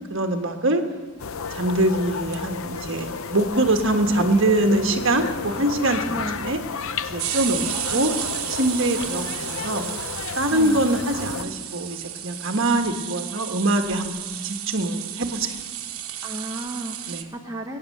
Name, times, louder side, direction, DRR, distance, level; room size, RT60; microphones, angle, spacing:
voice 1, 0.1-0.8 1.5-6.6 7.0-8.1 8.5-9.9 10.4-14.1 14.4-15.6 17.1-17.3, right 1 dB, 60° right, 5 dB, 1.4 m, -23 dB
sound 1, 1.2-11.4, left 5 dB, 70° left, 0.7 m, -32 dB
sound 2, 2.3-2.9 3.2-3.3 3.4-3.5 3.7-4.3 4.6-4.7 5.0-5.3 6.2-6.3 7.1-17.2, right 11 dB, 80° right, 1.2 m, -33 dB
voice 2, 6.1-6.4 10.5-10.9 16.2-17.2 17.4-17.8, right 1 dB, 15° right, 0 dB, 1.0 m, -33 dB
22.5 x 9.5 x 6.7 m, 1.5 s
head